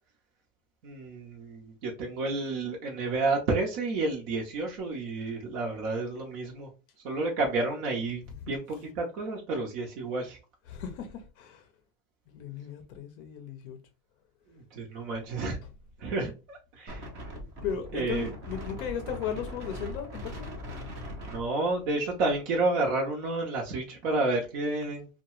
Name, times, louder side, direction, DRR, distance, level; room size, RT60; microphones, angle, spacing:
voice 1, 0.8-6.7 7.0-10.4 14.5-15.6 16.0-17.1 17.9-18.3 21.2-25.1, right 3 dB, 60° right, 0.9 m, -30 dB
voice 2, 10.7-11.7 12.3-13.8 17.6-20.5, left 8 dB, 40° left, 0.5 m, -36 dB
Wind, 16.9-22.4, left 1 dB, 25° right, 0.6 m, -40 dB
2.8 x 2.2 x 3.0 m
supercardioid pair, 165°, 44 cm